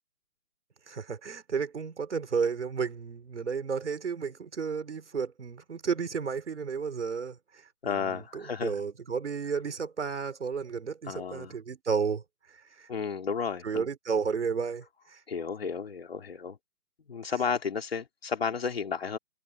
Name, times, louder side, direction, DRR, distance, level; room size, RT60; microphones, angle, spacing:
voice 1, 0.9-12.2 12.5-12.9 13.6-15.2, right 5 dB, 50° right, 4.0 m, -32 dB
voice 2, 7.8-8.8 11.1-11.5 12.9-13.9 15.3-16.6 17.1-19.2, left 6 dB, 45° left, 2.6 m, -32 dB
hypercardioid pair, 170°, 43 cm